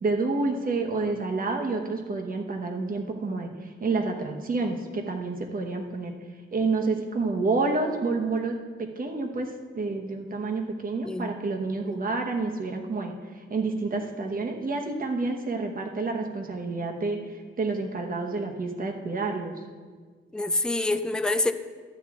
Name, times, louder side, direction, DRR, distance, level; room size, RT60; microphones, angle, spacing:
voice 1, 0.0-3.5 3.8-6.1 6.5-9.5 9.7-13.1 13.5-17.2 17.6-19.5, right 3 dB, 45° right, 2 dB, 1.0 m, -29 dB
voice 2, 20.3-21.5, left 2 dB, 5° left, 10 dB, 0.3 m, -26 dB
12.5 x 8.9 x 3.6 m, 1.5 s
wide cardioid pair, 175°, 21 cm